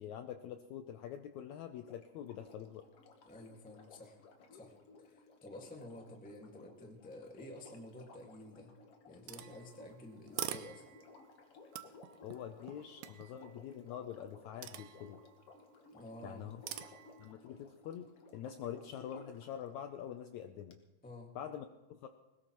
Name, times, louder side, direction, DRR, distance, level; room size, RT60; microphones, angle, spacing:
voice 1, 0.0-2.8 12.2-15.2 16.2-16.6 17.2-20.8 21.3-22.1, left 9 dB, 80° left, 7 dB, 1.7 m, -45 dB
Sink (filling or washing), 1.7-19.5 20.7-20.8, left 3 dB, 55° left, 1.7 m, -59 dB
voice 2, 3.2-4.2 4.5-8.7 9.1-10.9 15.9-16.5 21.0-21.3, left 1 dB, 10° left, 1 dB, 0.5 m, -51 dB
sound 1, 9.3-11.3 11.7-13.6 14.6-15.5 16.7-17.3, right 12 dB, 80° right, 2.3 m, -46 dB
21.0 x 19.0 x 3.0 m, 1.1 s
omnidirectional pair, 4.0 m